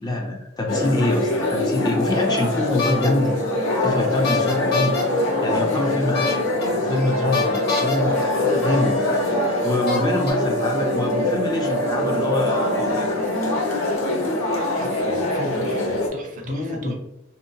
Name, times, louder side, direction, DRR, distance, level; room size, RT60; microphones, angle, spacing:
voice 1, 0.0-3.3 3.8-5.0 5.4-6.5 6.7-8.9 9.6-13.2 16.5-16.9, left 2 dB, 20° left, 0 dB, 0.3 m, -25 dB
sound 1, 0.7-16.1, left 2 dB, 85° left, 0.6 m, -23 dB
sound 2, 2.8-3.1 4.2-5.0 6.1-6.6 7.3-8.0 9.0-9.1 9.9-10.3, left 5 dB, 55° left, 0.7 m, -25 dB
sound 3, 6.9-13.1, right 5 dB, 90° right, 0.6 m, -30 dB
voice 2, 14.8-16.9, right 1 dB, 40° right, 1 dB, 0.5 m, -36 dB
2.7 x 2.1 x 2.6 m, 0.85 s
head